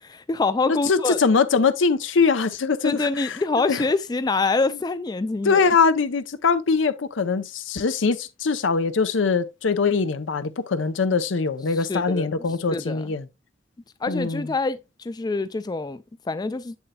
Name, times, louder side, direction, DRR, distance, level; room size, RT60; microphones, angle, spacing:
voice 1, 0.0-1.2 2.8-5.7 11.9-12.3 12.7-13.1 14.0-16.8, left 3 dB, 20° left, 0.3 m, -25 dB
voice 2, 0.7-3.4 3.7-3.8 5.4-13.3 14.1-14.5, left 5 dB, 80° left, 0.6 m, -22 dB
7.8 x 7.1 x 2.2 m
head